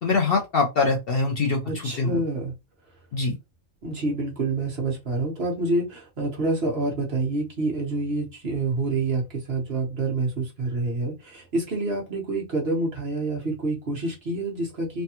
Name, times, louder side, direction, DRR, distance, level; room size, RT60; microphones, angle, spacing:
voice 1, 0.0-2.2 3.1-3.3, left 3 dB, 55° left, 0.7 m, -23 dB
voice 2, 1.6-2.5 3.8-15.0, right 2 dB, 50° right, 1.3 m, -27 dB
3.3 x 2.3 x 2.8 m
omnidirectional pair, 1.4 m